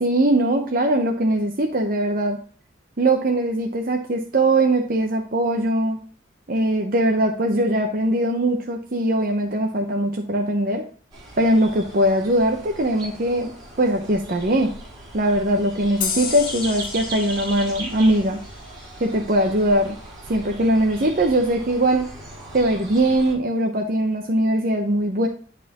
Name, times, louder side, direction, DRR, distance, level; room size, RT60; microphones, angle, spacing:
voice 1, 0.0-2.4 3.0-6.0 6.5-10.8 11.4-13.5 13.8-14.7 15.1-18.4 19.0-20.0 20.3-22.1 22.5-25.3, right 1 dB, 45° right, 3 dB, 0.7 m, -21 dB
sound 1, 11.1-23.3, right 2 dB, 20° right, 3.6 m, -38 dB
sound 2, 16.0-19.3, left 7 dB, 45° left, 1.0 m, -32 dB
10.5 x 4.3 x 2.9 m, 0.42 s
head